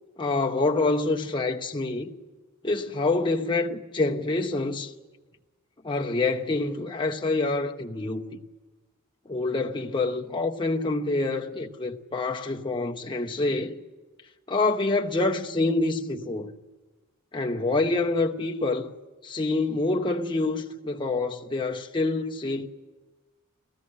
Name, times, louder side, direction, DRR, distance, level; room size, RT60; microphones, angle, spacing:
voice 1, 0.2-2.1 2.6-4.9 5.8-8.4 9.3-13.8 14.5-16.5 17.3-18.9 19.2-22.7, left 3 dB, 20° left, 0.9 m, -26 dB
17.5 x 15.5 x 9.8 m
head